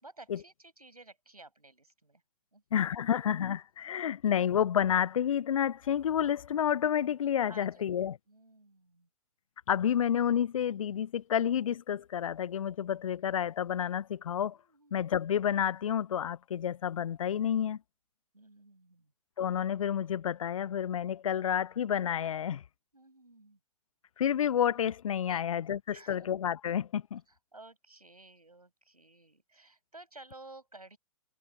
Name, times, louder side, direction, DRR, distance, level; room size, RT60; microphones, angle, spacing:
voice 1, 0.0-2.2 2.5-2.6 7.5-7.8 8.3-9.1 14.5-15.1 18.3-19.1 22.9-23.6 25.3-25.5 25.9-26.4 27.3-31.0, right 2 dB, 80° right, 5.2 m, -54 dB
voice 2, 2.7-8.2 9.7-14.6 14.9-17.8 19.4-22.6 24.2-27.2, left 9 dB, 60° left, 0.4 m, -30 dB
figure-of-eight pair, 115°, 19 cm